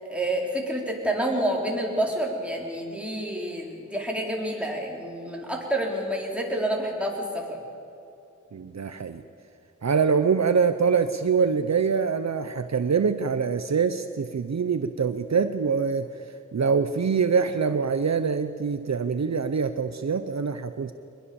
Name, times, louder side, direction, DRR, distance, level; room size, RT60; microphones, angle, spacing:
voice 1, 0.0-7.6, right 1 dB, 5° right, -2 dB, 4.4 m, -28 dB
voice 2, 8.5-9.2 9.8-16.1 16.5-20.9, right 5 dB, 60° right, 9 dB, 0.9 m, -24 dB
23.5 x 21.0 x 7.1 m, 2.7 s
wide cardioid pair, 95°, 31 cm